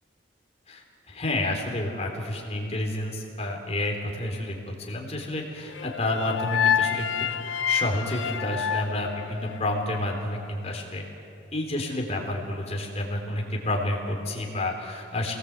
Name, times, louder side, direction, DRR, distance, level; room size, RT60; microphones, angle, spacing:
voice 1, 0.7-11.0 11.5-15.4, left 1 dB, 35° left, 0 dB, 3.9 m, -30 dB
sound 1, 5.7-10.0, left 8 dB, 85° left, 0.8 m, -28 dB
28.0 x 19.5 x 8.3 m, 2.8 s
head